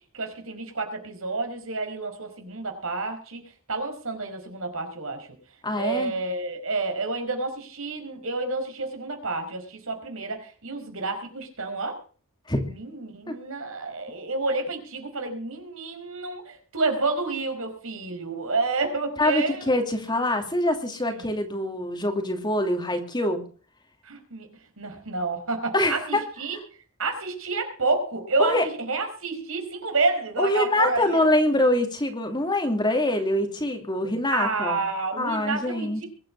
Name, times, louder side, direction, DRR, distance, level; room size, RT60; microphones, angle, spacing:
voice 1, 0.1-3.4 3.7-5.3 5.7-12.0 12.7-19.6 24.0-24.5 24.8-26.6 27.0-31.3 34.3-36.1, right 3 dB, 75° right, 5 dB, 5.0 m, -29 dB
voice 2, 5.6-6.1 12.5-12.6 13.3-13.4 19.2-23.4 25.7-26.2 26.5-26.6 28.4-28.7 30.4-34.8 35.2-36.0, left 1 dB, 20° left, 5 dB, 2.7 m, -24 dB
23.0 x 8.9 x 4.8 m, 0.40 s
head